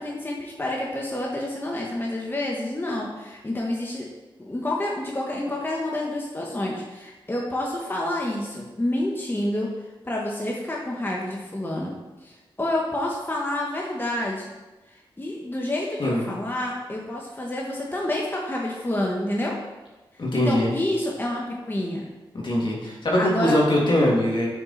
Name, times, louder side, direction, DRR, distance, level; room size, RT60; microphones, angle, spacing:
voice 1, 0.0-4.1 4.4-9.7 10.0-14.5 14.9-19.6 20.3-22.0 23.2-23.5, left 1 dB, 25° left, -3 dB, 1.6 m, -28 dB
voice 2, 20.2-20.7 22.4-24.5, left 1 dB, 60° left, -3 dB, 2.7 m, -22 dB
9.0 x 6.0 x 4.3 m, 1.2 s
cardioid pair, 50°, 9 cm